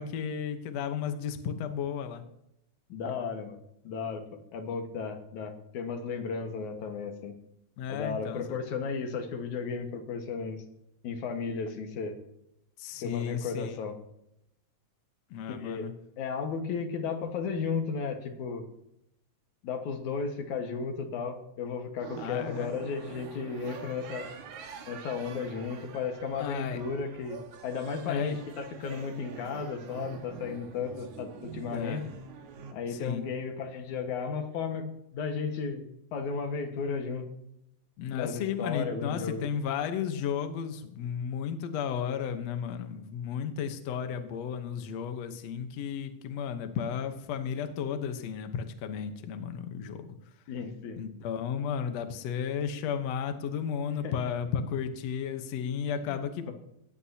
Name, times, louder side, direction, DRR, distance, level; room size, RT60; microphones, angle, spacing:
voice 1, 0.0-2.2 7.8-8.6 12.8-13.8 15.3-15.9 22.2-22.7 26.4-26.8 28.1-28.4 31.7-32.0 32.9-33.2 38.0-50.2 51.0-56.5, left 7 dB, 65° left, 7 dB, 2.2 m, -33 dB
voice 2, 2.9-3.6 3.8-4.2 4.5-7.4 7.9-10.6 11.0-12.1 13.0-14.0 15.5-15.9 16.2-18.7 19.6-24.3 24.9-32.0 32.7-34.9 35.1-35.8 36.1-37.3 38.1-39.4 50.5-51.0 54.0-54.1 56.1-56.2 56.5-56.6, left 5 dB, 85° left, 5 dB, 3.0 m, -34 dB
sound 1, 22.0-32.7, right 6 dB, 80° right, 2.9 m, -45 dB
18.0 x 14.5 x 2.9 m, 0.78 s
omnidirectional pair, 3.3 m